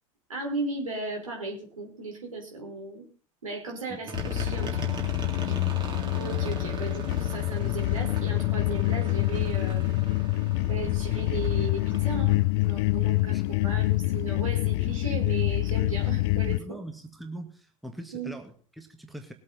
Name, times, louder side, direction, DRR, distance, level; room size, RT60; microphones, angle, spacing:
voice 1, 0.3-3.1 3.4-4.8 5.3-5.5 6.2-9.9 10.7-16.8 18.1-18.3, right 3 dB, 75° right, 1 dB, 4.9 m, -36 dB
sound 1, 4.1-16.6, left 19 dB, 50° left, 0.5 m, -26 dB
sound 2, 4.1-12.4, right 4 dB, 25° right, 3.2 m, -40 dB
voice 2, 5.4-5.8 13.3-13.4 16.5-19.3, right 1 dB, ahead, 4 dB, 1.8 m, -42 dB
20.0 x 8.4 x 4.3 m, 0.39 s
figure-of-eight pair, 80°, 17 cm